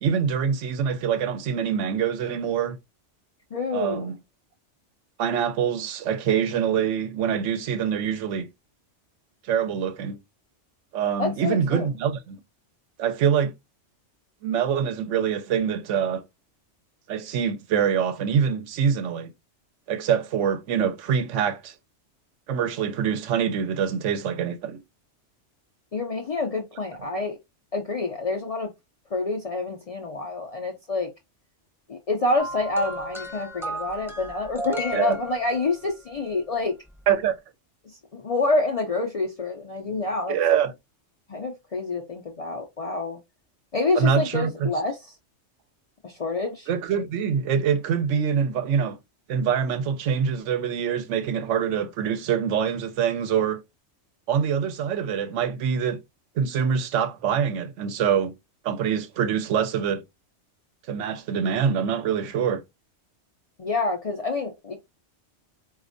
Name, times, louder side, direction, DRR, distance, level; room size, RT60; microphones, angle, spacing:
voice 1, 0.0-2.8 3.7-4.2 5.2-8.5 9.4-10.2 10.9-12.4 13.0-13.5 14.4-16.2 17.1-19.3 19.9-21.7 22.5-24.8 34.9-35.2 37.1-37.4 40.3-40.7 44.0-44.7 46.7-49.0 49.3-53.6 54.3-56.0 56.4-58.3 58.6-60.0 60.9-62.6, right 7 dB, 90° right, 0.9 m, -25 dB
voice 2, 3.5-4.2 11.2-11.9 25.9-27.4 27.7-28.7 29.1-31.1 31.9-36.7 38.1-40.4 41.3-43.2 43.7-45.1 46.0-46.7 63.6-64.7, left 3 dB, 55° left, 0.4 m, -27 dB
sound 1, 32.4-35.9 37.0-37.1, right 1 dB, ahead, 0.6 m, -35 dB
4.1 x 2.4 x 2.5 m
omnidirectional pair, 1.2 m